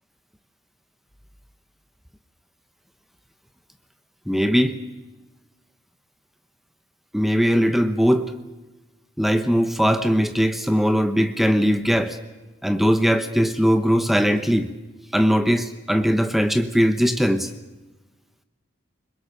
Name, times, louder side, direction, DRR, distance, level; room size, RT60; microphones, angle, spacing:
voice 1, 4.3-4.8 7.1-8.3 9.2-12.2 12.6-14.7 15.1-17.5, equal, ahead, 9 dB, 1.0 m, -20 dB
29.5 x 21.0 x 5.8 m, 1.1 s
head